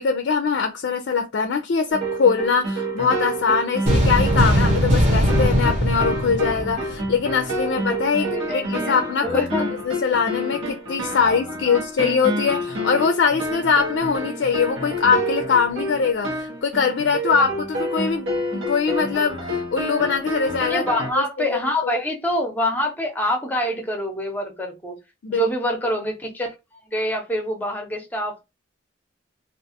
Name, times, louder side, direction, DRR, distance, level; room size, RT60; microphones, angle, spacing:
voice 1, 0.0-9.4 9.9-20.9 21.2-21.9 25.2-25.5, left 5 dB, 65° left, 0.4 m, -22 dB
sound 1, 1.9-21.1, right 1 dB, 90° right, 1.0 m, -28 dB
sound 2, 3.9-7.3, equal, 35° right, 0.8 m, -20 dB
voice 2, 8.2-9.7 11.2-11.4 11.7-11.8 20.7-25.0 25.3-26.5 26.9-28.4, equal, 10° left, 0.6 m, -26 dB
2.4 x 2.3 x 2.7 m
head